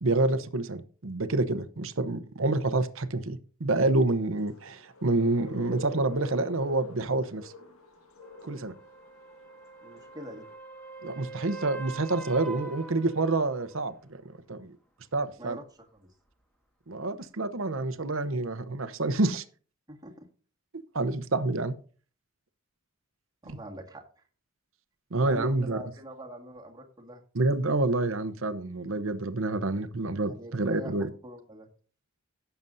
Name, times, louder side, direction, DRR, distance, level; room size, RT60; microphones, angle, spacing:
voice 1, 0.0-7.5 8.4-8.7 11.0-14.2 14.5-14.7 15.1-15.6 16.9-19.4 20.9-21.7 23.5-23.6 25.1-25.8 27.3-31.1, right 2 dB, 65° right, 11 dB, 0.9 m, -28 dB
sound 1, 4.4-10.5, left 2 dB, 90° left, 1.9 m, -47 dB
sound 2, 8.2-13.9 18.0-18.1, right 4 dB, 5° left, 1.6 m, -44 dB
voice 2, 9.8-10.4 15.4-16.1 19.9-20.3 23.4-24.2 25.2-27.2 30.3-31.0 31.2-31.7, right 1 dB, 20° right, 1 dB, 1.8 m, -44 dB
16.5 x 6.9 x 2.7 m, 0.40 s
head